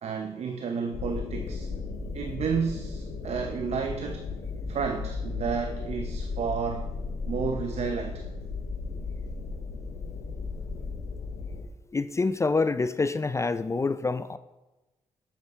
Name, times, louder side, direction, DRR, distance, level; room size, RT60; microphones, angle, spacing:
voice 1, 0.0-1.7 2.1-4.3 4.7-6.9 7.3-8.2, right 6 dB, 65° right, 5 dB, 0.7 m, -31 dB
sound 1, 0.9-11.7, left 4 dB, 80° left, 0.8 m, -35 dB
voice 2, 11.9-14.4, left 3 dB, 25° left, 13 dB, 0.3 m, -26 dB
8.0 x 7.1 x 3.6 m, 1.1 s
supercardioid pair, 55°, 12 cm